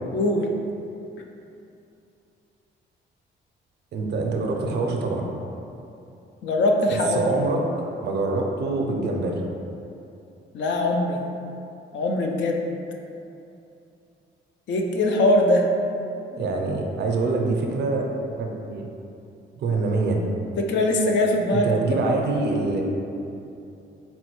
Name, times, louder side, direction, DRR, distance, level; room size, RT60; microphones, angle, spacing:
voice 1, 0.1-0.5 6.4-7.2 10.5-11.2 11.9-12.7 14.7-15.7 20.6-21.8, left 1 dB, 70° left, 2 dB, 0.4 m, -21 dB
voice 2, 3.9-5.3 7.2-9.4 16.3-18.1 18.4-18.9 19.6-20.2 21.5-22.8, right 3 dB, 60° right, 1 dB, 0.5 m, -25 dB
4.0 x 2.2 x 3.0 m, 2.7 s
cardioid pair, 90°, 20 cm